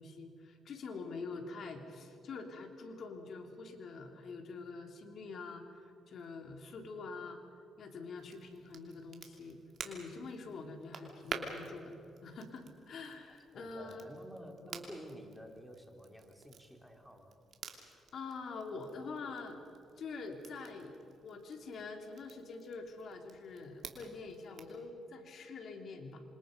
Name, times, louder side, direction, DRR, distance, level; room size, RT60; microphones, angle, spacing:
voice 1, 0.0-7.4 7.8-14.1 18.1-19.6 20.0-21.0 21.2-26.2, left 4 dB, 60° left, 4 dB, 3.3 m, -45 dB
Crackle, 8.2-24.8, right 6 dB, 60° right, 3.0 m, -51 dB
voice 2, 13.5-17.4, equal, ahead, 3 dB, 3.2 m, -50 dB
27.5 x 26.0 x 5.3 m, 2.7 s
cardioid pair, 90°, 0 cm